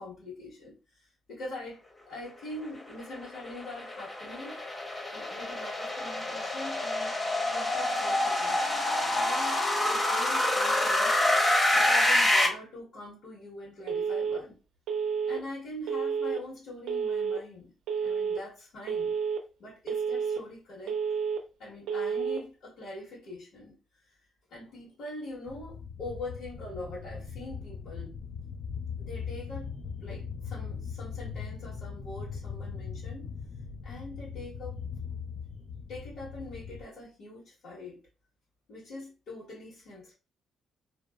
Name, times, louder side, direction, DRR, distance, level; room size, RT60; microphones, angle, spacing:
voice 1, 0.0-4.6 5.1-7.2 7.5-9.6 9.9-11.2 11.7-14.6 15.3-17.7 18.0-19.1 19.6-21.0 21.6-23.8 24.5-28.2 29.0-29.7 30.0-33.3 33.8-34.8 35.9-38.0 38.7-40.1, left 2 dB, 65° left, 1.4 m, -43 dB
sound 1, 2.9-12.5, left 1 dB, 30° left, 0.8 m, -27 dB
Telephone, 13.9-14.4 14.9-15.4 15.9-16.4 16.9-17.4 17.9-18.4 18.9-19.4 19.9-20.4 20.9-21.4 21.9-22.4, right 6 dB, 90° right, 0.4 m, -30 dB
sound 2, 25.5-36.9, left 6 dB, 50° left, 0.3 m, -40 dB
2.6 x 2.0 x 2.3 m
cardioid pair, 90°, 0 cm